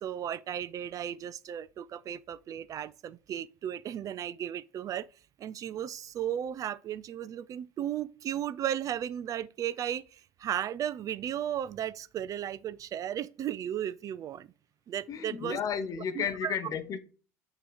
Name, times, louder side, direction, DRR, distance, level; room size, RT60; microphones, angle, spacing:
voice 1, 0.0-5.1 5.4-10.0 10.4-14.5 14.9-15.6 16.2-16.6, right 10 dB, 45° right, 0.3 m, -35 dB
voice 2, 15.1-17.0, left 7 dB, 45° left, 0.8 m, -33 dB
6.7 x 2.9 x 4.8 m
hypercardioid pair, 70°, 8 cm